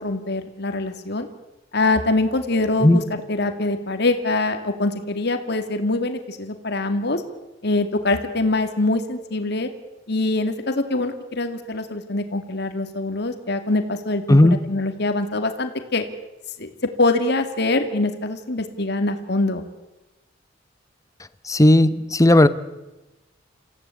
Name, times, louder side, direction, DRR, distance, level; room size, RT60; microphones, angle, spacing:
voice 1, 0.0-1.3 1.7-7.2 7.6-9.7 10.1-16.0 16.6-16.7 17.0-19.6, left 2 dB, 60° left, 7 dB, 2.4 m, -24 dB
voice 2, 21.5-22.5, left 1 dB, 15° left, 14 dB, 1.0 m, -14 dB
27.5 x 16.0 x 8.5 m, 1.0 s
head